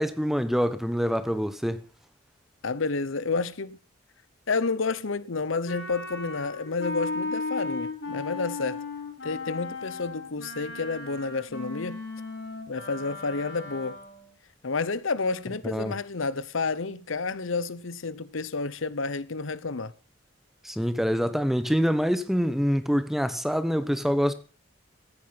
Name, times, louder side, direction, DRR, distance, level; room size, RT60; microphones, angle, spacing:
voice 1, 0.0-1.8 15.6-15.9 20.6-24.3, equal, ahead, 1.0 m, -25 dB
voice 2, 2.6-3.8 4.5-8.8 9.2-12.0 12.7-14.0 14.6-19.9, left 4 dB, 80° left, 0.9 m, -30 dB
Wind instrument woodwind instrument, 5.7-14.3, left 3 dB, 60° left, 4.2 m, -36 dB
16.0 x 9.6 x 5.9 m
head